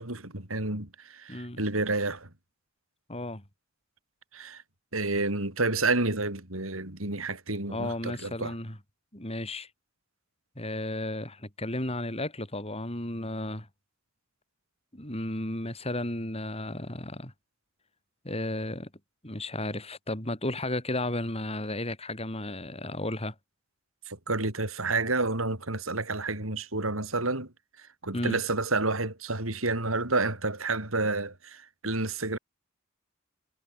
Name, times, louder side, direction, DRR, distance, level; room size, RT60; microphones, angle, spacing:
voice 1, 0.0-2.3 4.3-4.6 4.9-8.5 24.1-27.5 27.8-32.4, right 3 dB, 85° right, 5.6 m, -30 dB
voice 2, 1.3-1.6 3.1-3.4 7.7-8.8 9.1-9.7 10.5-13.7 14.9-17.3 18.2-18.9 19.2-23.3 28.1-28.4, left 1 dB, 30° left, 6.4 m, -33 dB
head